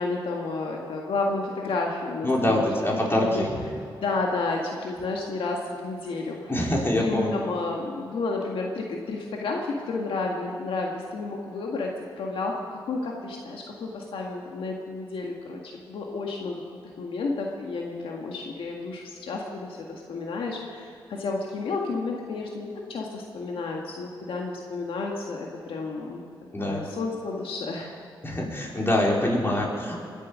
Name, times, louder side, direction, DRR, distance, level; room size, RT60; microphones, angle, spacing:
voice 1, 0.0-2.7 3.2-3.5 4.0-6.5 7.0-11.9 12.2-16.6 17.0-26.2 26.6-28.0, left 3 dB, 80° left, 0 dB, 1.8 m, -31 dB
voice 2, 2.2-3.6 6.5-7.4 26.5-26.8 28.2-30.0, left 1 dB, 25° left, -2 dB, 4.6 m, -25 dB
22.5 x 9.1 x 6.4 m, 2.4 s
cardioid pair, 70°, 9 cm